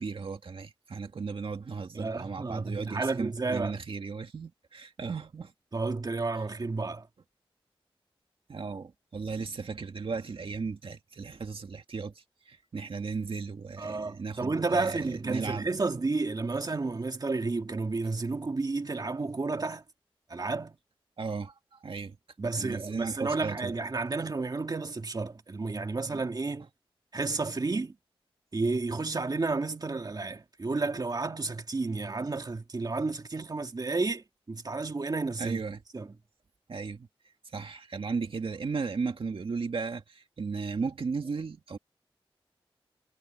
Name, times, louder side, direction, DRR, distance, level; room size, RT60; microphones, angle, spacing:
voice 1, 0.0-5.5 8.5-15.7 21.2-22.2 22.6-23.8 26.1-26.2 35.4-35.8 36.7-37.1 37.5-41.8, right 4 dB, 70° right, 2.0 m, -35 dB
voice 2, 1.9-3.8 5.7-7.1 13.8-19.8 20.3-20.8 22.4-26.7 27.1-27.9 28.5-35.6 35.9-36.1, right 3 dB, 45° right, 2.2 m, -31 dB
wide cardioid pair, 90°, 10 cm